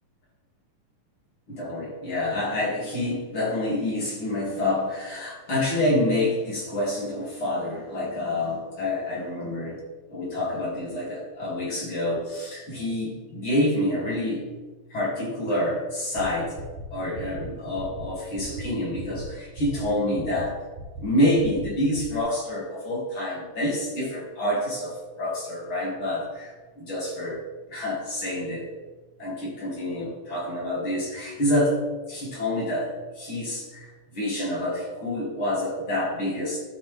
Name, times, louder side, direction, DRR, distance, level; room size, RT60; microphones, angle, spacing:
voice 1, 1.6-9.8 10.1-14.4 14.9-16.6 16.9-20.5 21.0-26.5 26.8-27.4 27.7-28.7 29.2-31.8 32.1-33.9 34.1-36.6, left 1 dB, 40° left, -6 dB, 3.5 m, -27 dB
sound 1, 16.2-16.3 16.6-16.8 17.2-17.4 17.8-18.0 18.4-18.6 19.0-19.2 19.6-19.8 20.2-20.4 20.8-21.0 21.4-21.6 22.0-22.2, right 4 dB, 65° right, 2.3 m, -38 dB
13.0 x 6.0 x 3.6 m, 1.2 s
omnidirectional pair, 3.7 m